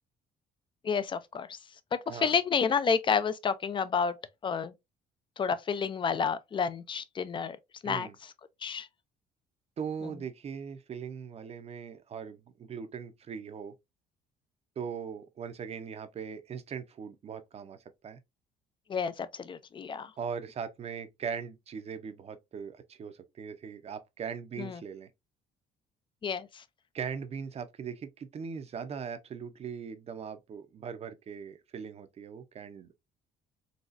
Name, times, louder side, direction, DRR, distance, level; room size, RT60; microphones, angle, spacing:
voice 1, 0.8-1.6 1.9-4.7 5.4-7.6 7.8-8.3 8.6-8.9 18.9-20.1 24.6-24.8 26.2-26.6, left 6 dB, 30° left, 0.4 m, -30 dB
voice 2, 7.8-8.1 9.8-13.7 14.8-17.8 18.0-18.2 20.2-25.1 26.9-32.9, right 6 dB, 40° right, 0.6 m, -40 dB
4.0 x 2.3 x 2.5 m
cardioid pair, 110°, 17 cm